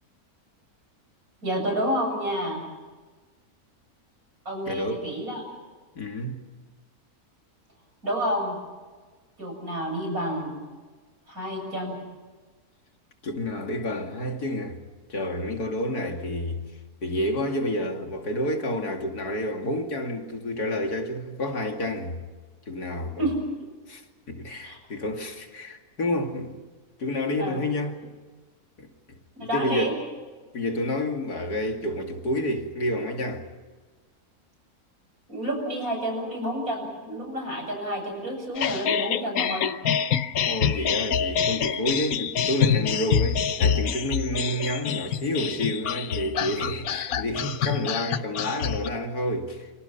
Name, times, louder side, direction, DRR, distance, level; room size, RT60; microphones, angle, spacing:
voice 1, 1.4-2.6 4.5-5.4 8.0-8.6 9.4-10.6 11.3-12.0 23.2-23.3 24.6-24.8 27.4-27.6 29.4-29.9 35.3-39.7 44.3-44.4, equal, 65° right, 7.9 m, -29 dB
voice 2, 4.7-5.1 5.9-6.4 13.2-14.8 15.1-16.6 17.0-22.2 22.7-23.2 23.9-24.0 24.3-26.6 27.0-28.1 28.8-29.9 30.5-33.5 40.4-49.7, left 1 dB, 90° left, 3.0 m, -29 dB
sound 1, 38.5-48.9, left 8 dB, 70° left, 1.4 m, -26 dB
28.5 x 25.5 x 5.8 m
omnidirectional pair, 1.6 m